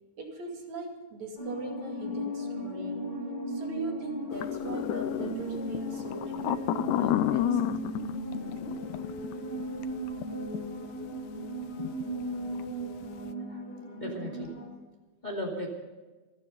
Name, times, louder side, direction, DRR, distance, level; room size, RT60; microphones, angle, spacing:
voice 1, 0.2-3.1 3.5-7.6, right 2 dB, 65° right, 2 dB, 3.7 m, -40 dB
sound 1, 1.4-14.7, equal, 35° left, 5.2 m, -36 dB
sound 2, 4.3-10.2 10.5-10.6 11.8-12.0 12.3-12.6, left 12 dB, 80° left, 2.1 m, -31 dB
voice 2, 13.1-13.6 14.0-14.5 15.2-15.7, left 1 dB, 15° left, -1 dB, 2.5 m, -37 dB
27.0 x 9.6 x 5.3 m, 1.2 s
omnidirectional pair, 3.5 m